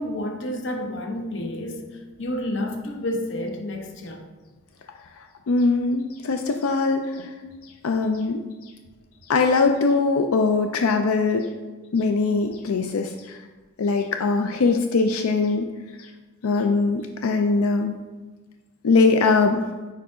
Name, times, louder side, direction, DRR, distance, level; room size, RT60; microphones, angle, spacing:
voice 1, 0.0-1.9 2.2-4.2 6.5-6.6 7.4-7.6, left 1 dB, 55° left, 4 dB, 0.7 m, -30 dB
voice 2, 5.5-7.3 7.8-8.4 9.3-11.5 11.9-13.4 13.8-15.7 16.4-17.9 18.8-19.6, left 4 dB, 85° left, 5 dB, 0.4 m, -21 dB
4.7 x 4.6 x 4.8 m, 1.3 s
head